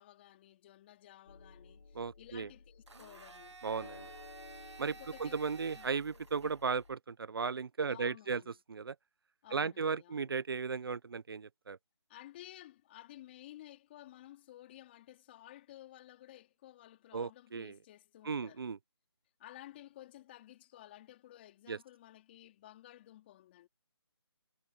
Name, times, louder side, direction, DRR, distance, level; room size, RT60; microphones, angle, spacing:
voice 1, 0.0-3.6 4.8-5.4 5.7-5.9 6.4-6.5 7.9-8.6 9.4-10.3 12.1-18.6 19.4-23.7, left 14 dB, 25° left, 3.5 m, -54 dB
sound 1, 1.3-7.0, left 4 dB, 65° left, 5.4 m, -55 dB
voice 2, 1.9-2.5 3.6-4.1 4.8-4.9 5.2-8.4 8.7-8.9 9.5-11.8 17.1-17.7 18.2-18.8 21.7-21.8, right 5 dB, 55° right, 1.0 m, -36 dB
Domestic sounds home sounds, 2.9-6.9, right 4 dB, 80° right, 2.5 m, -54 dB
figure-of-eight pair, 160°, 14 cm